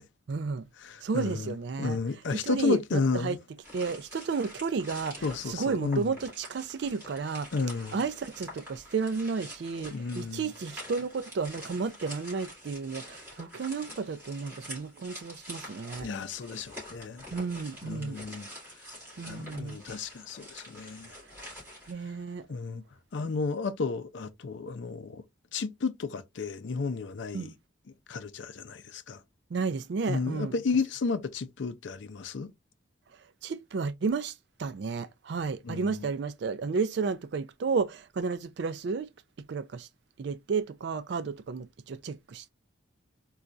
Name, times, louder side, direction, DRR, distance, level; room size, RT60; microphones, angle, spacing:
voice 1, 0.3-0.6 1.0-2.0 2.4-3.4 3.7-7.5 7.9-16.1 17.3-18.2 19.2-19.8 21.1-21.2 21.9-22.5 23.2-23.3 27.3-27.5 29.5-30.5 33.4-39.1 39.5-39.9 40.2-42.5, right 4 dB, 55° right, 0.3 m, -32 dB
voice 2, 0.8-3.4 5.2-6.1 7.5-8.0 9.9-10.4 16.0-17.2 17.8-18.5 19.2-21.1 22.5-22.8 23.1-25.2 25.5-27.5 28.1-29.2 30.1-32.5 35.7-36.1, left 4 dB, 65° left, 0.4 m, -32 dB
sound 1, 3.6-21.9, equal, 10° right, 2.2 m, -46 dB
4.1 x 2.3 x 2.4 m
head